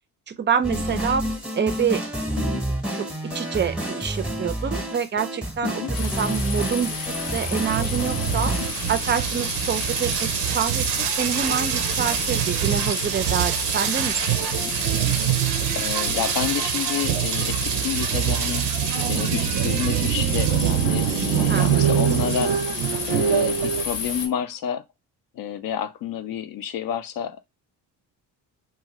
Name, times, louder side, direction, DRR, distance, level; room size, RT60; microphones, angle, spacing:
voice 1, 0.3-1.2 1.5-2.0 2.6-3.0 3.3-8.5 8.9-10.3 10.5-14.4 21.5-21.9, right 7 dB, 30° right, 0.4 m, -27 dB
sound 1, 0.6-8.7, right 1 dB, ahead, 0.8 m, -29 dB
sound 2, 5.9-24.3, left 4 dB, 80° left, 1.0 m, -32 dB
sound 3, 7.7-23.8, right 10 dB, 85° right, 0.5 m, -24 dB
voice 2, 15.7-18.7 19.1-22.6 23.1-24.8 25.3-27.5, left 9 dB, 60° left, 0.5 m, -30 dB
2.5 x 2.4 x 2.9 m
cardioid pair, 95°, 40 cm